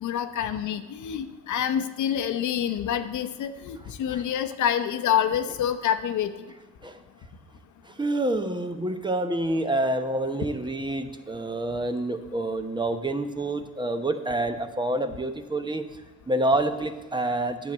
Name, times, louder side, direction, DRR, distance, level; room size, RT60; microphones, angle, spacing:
voice 1, 0.0-6.3, left 9 dB, 75° left, 9 dB, 0.8 m, -27 dB
voice 2, 7.8-15.9 16.3-17.7, right 1 dB, 15° right, 8 dB, 0.9 m, -27 dB
9.1 x 7.4 x 7.4 m, 1.2 s
cardioid pair, 90°, 30 cm